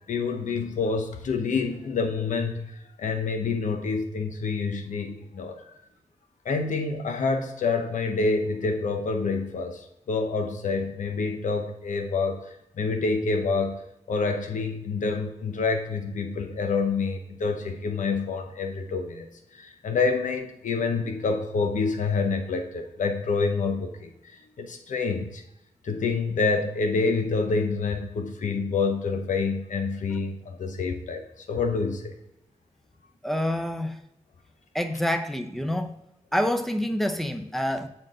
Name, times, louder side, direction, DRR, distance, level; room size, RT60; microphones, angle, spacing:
voice 1, 0.1-2.7 3.0-5.5 6.4-12.4 12.8-13.8 14.1-19.3 19.5-24.1 24.6-25.4 25.8-32.1, left 4 dB, 85° left, 4 dB, 0.9 m, -27 dB
voice 2, 33.2-34.0 34.7-36.0 36.3-37.9, left 1 dB, ahead, 6 dB, 0.6 m, -27 dB
7.8 x 4.4 x 3.7 m, 0.86 s
wide cardioid pair, 100°, 13 cm